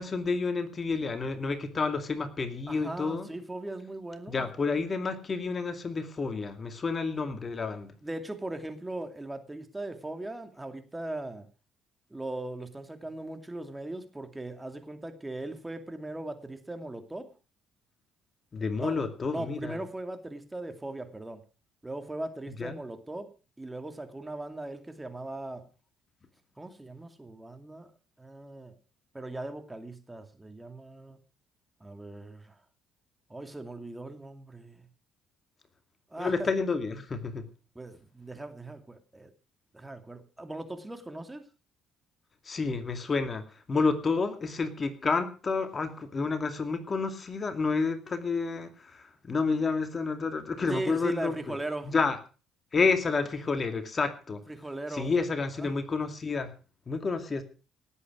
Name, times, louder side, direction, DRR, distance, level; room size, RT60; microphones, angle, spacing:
voice 1, 0.0-3.3 4.3-7.9 18.5-19.8 22.6-22.7 36.2-37.4 42.5-43.4 43.7-51.4 51.9-52.2 52.7-54.4 54.9-56.5 56.9-57.4, left 4 dB, 40° left, 8 dB, 2.4 m, -30 dB
voice 2, 2.7-4.5 8.0-11.5 12.1-17.3 18.8-19.0 19.3-21.4 21.8-25.7 26.6-27.9 28.2-28.8 29.1-31.2 31.8-32.6 33.3-34.9 36.1-36.5 37.7-39.3 39.7-41.5 50.7-51.9 54.5-55.1 55.5-55.7, right 2 dB, 15° right, 8 dB, 2.5 m, -39 dB
18.0 x 8.4 x 6.1 m, 0.36 s
hypercardioid pair, 60°, 0 cm